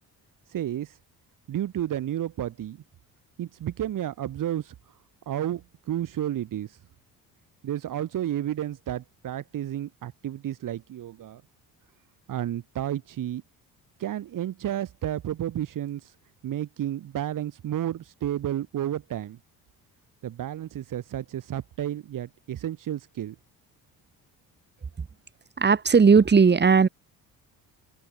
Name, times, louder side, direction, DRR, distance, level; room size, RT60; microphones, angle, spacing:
voice 1, 0.5-1.0 1.5-2.8 3.4-5.0 5.3-6.8 7.6-11.4 12.3-13.4 14.0-16.1 16.4-19.4 20.2-23.4, right 11 dB, 60° right, 4.4 m, -31 dB
voice 2, 25.6-26.9, right 5 dB, 30° right, 7.0 m, -17 dB
cardioid pair, 135°, 36 cm